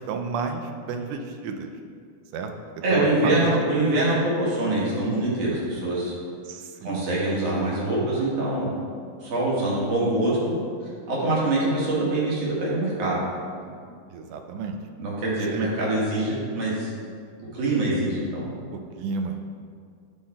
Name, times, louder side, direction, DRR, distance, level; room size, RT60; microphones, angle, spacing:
voice 1, 0.0-1.7 2.3-2.5 2.9-3.6 6.4-7.0 14.1-14.8 15.5-15.7 18.7-19.5, right 4 dB, 90° right, 5 dB, 2.2 m, -31 dB
voice 2, 2.8-6.1 6.8-8.7 9.2-10.5 11.1-13.2 15.0-16.9 17.5-18.5, right 2 dB, 55° right, -6 dB, 2.7 m, -24 dB
11.0 x 3.8 x 4.2 m, 2.2 s
omnidirectional pair, 3.5 m